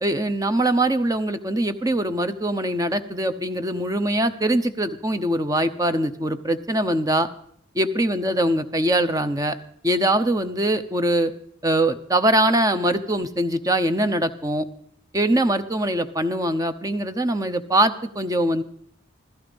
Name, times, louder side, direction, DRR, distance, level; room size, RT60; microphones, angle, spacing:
voice 1, 0.0-7.3 7.7-9.6 9.8-11.3 11.6-14.7 15.1-18.6, right 1 dB, 20° right, 10 dB, 0.8 m, -22 dB
16.0 x 14.0 x 5.2 m, 0.63 s
head